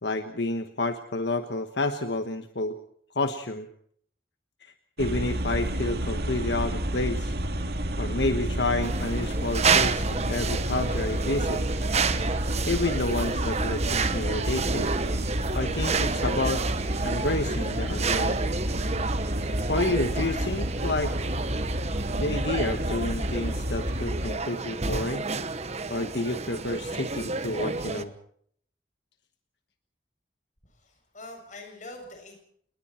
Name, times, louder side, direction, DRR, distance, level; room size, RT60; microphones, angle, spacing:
voice 1, 0.0-2.8 3.1-3.7 4.6-4.7 5.0-7.3 8.0-11.6 12.7-14.9 15.5-16.6 17.0-18.4 19.7-21.1 22.2-25.3 25.9-28.1, left 2 dB, 80° left, 7 dB, 1.3 m, -29 dB
sound 1, 5.0-24.3, equal, 65° right, 2.3 m, -30 dB
sound 2, 8.8-28.0, right 4 dB, 40° right, 1.1 m, -30 dB
voice 2, 30.8-32.4, left 2 dB, 45° left, 4 dB, 7.2 m, -44 dB
29.0 x 20.5 x 4.5 m, 0.64 s
head